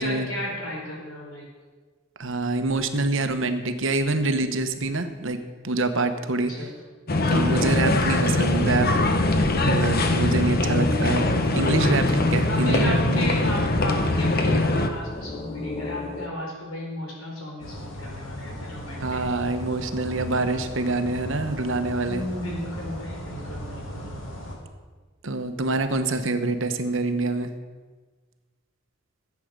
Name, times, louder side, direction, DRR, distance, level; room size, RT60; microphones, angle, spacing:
voice 1, 0.0-1.5 6.5-6.7 7.4-8.3 12.5-19.2 22.0-24.1, left 1 dB, 90° left, -1 dB, 4.4 m, -34 dB
voice 2, 2.2-6.7 7.3-8.9 9.7-11.3 11.5-13.3 19.0-22.3 25.2-27.5, right 2 dB, 65° right, 8 dB, 1.1 m, -26 dB
sound 1, 7.1-14.9, left 2 dB, 45° left, 1.2 m, -22 dB
sound 2, 10.6-16.3, left 3 dB, 30° left, 0.8 m, -34 dB
sound 3, 17.6-24.6, left 1 dB, 65° left, 2.8 m, -37 dB
15.0 x 8.5 x 6.7 m, 1.4 s
head